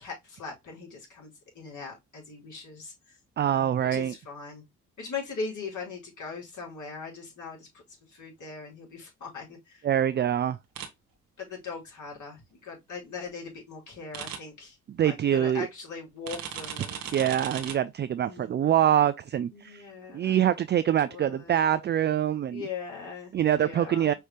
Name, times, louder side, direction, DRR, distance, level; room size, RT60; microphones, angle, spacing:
voice 1, 0.0-3.2 3.5-4.6 5.0-7.7 8.1-9.8 11.4-14.8 15.0-17.3 18.2-18.7 19.5-20.4 21.1-21.5 22.5-24.1, left 4 dB, 55° left, 3.4 m, -40 dB
voice 2, 3.4-4.2 9.8-10.6 15.0-15.7 17.1-19.8 20.1-22.6 23.3-24.1, right 10 dB, 30° right, 0.4 m, -25 dB
sound 1, 10.8-10.9 14.1-14.4 16.3-17.7, right 9 dB, 70° right, 1.2 m, -36 dB
5.5 x 3.2 x 2.9 m
hypercardioid pair, 50°, 37 cm